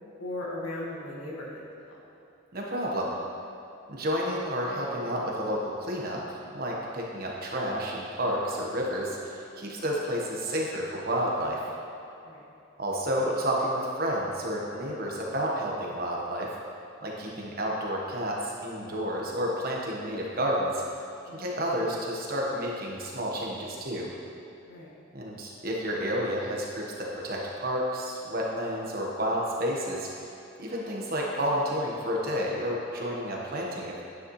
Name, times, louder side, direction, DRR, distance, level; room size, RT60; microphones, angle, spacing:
voice 1, 0.2-2.0 9.7-9.9 12.2-12.4 21.3-21.5 24.7-25.0, left 1 dB, 85° left, -4 dB, 1.9 m, -38 dB
voice 2, 2.5-3.1 3.9-11.6 12.8-16.5 17.0-20.8 21.3-24.1 25.1-30.1 30.6-34.0, equal, 45° right, -3 dB, 1.3 m, -30 dB
9.7 x 9.3 x 3.2 m, 2.8 s
head